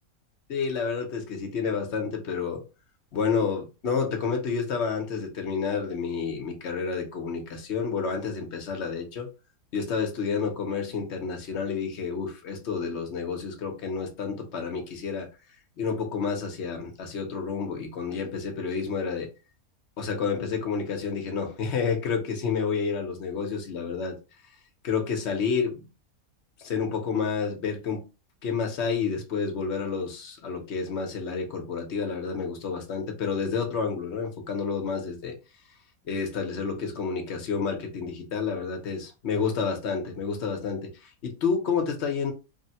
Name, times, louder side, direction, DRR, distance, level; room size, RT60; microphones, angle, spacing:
voice 1, 0.5-2.6 3.1-9.3 9.7-15.3 15.8-19.3 20.0-24.2 24.8-25.9 26.6-28.0 28.4-35.4 36.0-42.3, left 5 dB, 55° left, 1.0 m, -29 dB
3.3 x 2.1 x 2.7 m
omnidirectional pair, 1.5 m